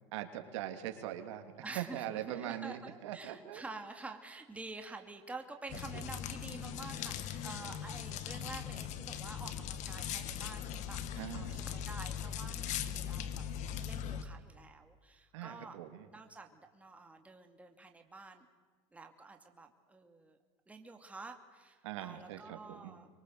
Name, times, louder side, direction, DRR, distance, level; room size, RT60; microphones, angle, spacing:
voice 1, 0.1-3.6 11.2-11.7 15.3-16.1 21.8-23.0, right 12 dB, 80° right, 7 dB, 2.9 m, -42 dB
voice 2, 1.6-11.0 11.3-13.4 13.8-15.8 16.1-18.5 18.9-20.4 20.7-23.1, right 3 dB, 10° right, 4 dB, 2.4 m, -49 dB
sound 1, 5.7-14.2, left 9 dB, 50° left, 1.9 m, -40 dB
25.5 x 23.0 x 7.9 m, 1.5 s
supercardioid pair, 125°, 15 cm